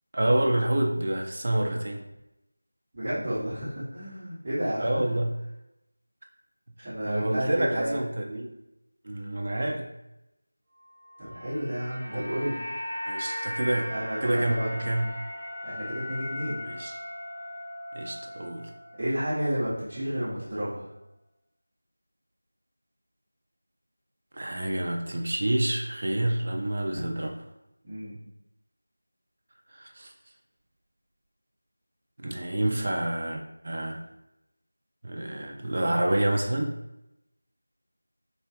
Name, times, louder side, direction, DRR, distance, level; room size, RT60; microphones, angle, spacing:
voice 1, 0.1-2.0 4.8-5.3 6.8-8.5 9.0-9.9 12.1-12.2 13.1-13.9 14.2-15.1 16.6-16.9 17.9-18.7 24.3-27.3 29.7-30.1 32.2-34.0 35.0-36.8, right 1 dB, 45° right, 2 dB, 0.5 m, -28 dB
voice 2, 2.9-4.9 6.8-8.0 11.2-12.6 13.9-14.7 15.6-16.7 19.0-20.9 26.9-27.1 27.8-28.2, equal, 25° right, -15 dB, 1.3 m, -31 dB
sound 1, 11.1-19.4 19.7-19.9, left 1 dB, 60° right, 1.2 m, -38 dB
4.2 x 2.3 x 2.8 m, 0.90 s
figure-of-eight pair, 175°, 0 cm